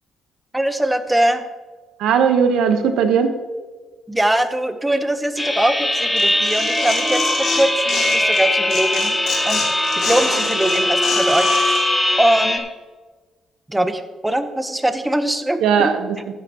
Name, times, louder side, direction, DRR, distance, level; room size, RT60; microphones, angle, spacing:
voice 1, 0.5-1.5 4.1-9.2 9.4-9.6 10.0-11.5 12.2-12.7 13.7-15.9, right 1 dB, 10° right, 9 dB, 0.9 m, -21 dB
voice 2, 2.0-3.3 15.6-16.3, right 7 dB, 85° right, 7 dB, 1.1 m, -18 dB
sound 1, 5.4-12.6, left 1 dB, 15° left, 1.4 m, -20 dB
Tearing, 6.2-8.4 8.7-11.8, left 4 dB, 65° left, 2.4 m, -27 dB
13.5 x 9.8 x 3.0 m, 1.3 s
cardioid pair, 90°, 0 cm